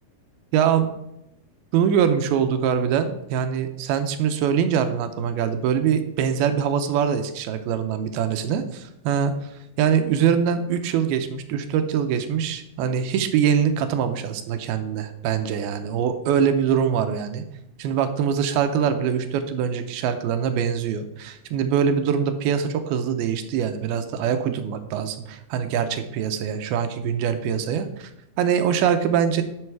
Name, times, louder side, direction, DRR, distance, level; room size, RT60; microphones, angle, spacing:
voice 1, 0.5-0.9 1.7-9.5 9.8-17.4 17.8-28.1 28.4-29.4, right 8 dB, 80° right, 8 dB, 2.6 m, -23 dB
11.0 x 6.4 x 4.7 m, 0.84 s
omnidirectional pair, 4.5 m